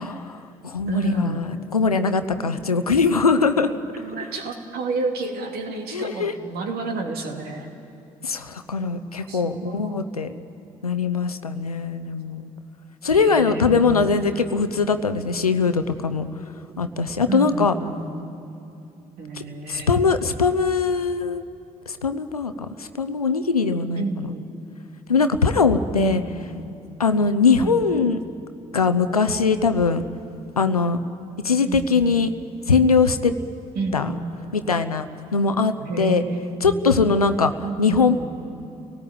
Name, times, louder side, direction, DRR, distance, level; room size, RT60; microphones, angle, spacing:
voice 1, 0.0-3.7 5.9-6.3 8.2-10.3 10.8-12.5 13.0-16.3 16.8-17.7 19.3-21.4 21.9-22.5 22.8-24.3 25.1-26.2 27.0-28.2 28.7-30.0 30.6-31.0 31.4-32.3 32.7-33.3 33.9-34.1 34.5-35.0 35.3-36.2 36.6-37.5 37.8-38.3, left 4 dB, 90° left, 10 dB, 0.7 m, -21 dB
voice 2, 0.9-1.4 3.6-7.7 9.3-10.0 13.1-14.3 17.3-18.3 19.2-20.0 24.0-24.5 26.0-26.7 27.6-27.9 31.6-32.2 33.7-34.3 35.8-37.2 37.6-38.3, right 3 dB, 60° right, 3 dB, 2.8 m, -30 dB
29.5 x 18.0 x 8.9 m, 2.7 s
figure-of-eight pair, 45°, 18 cm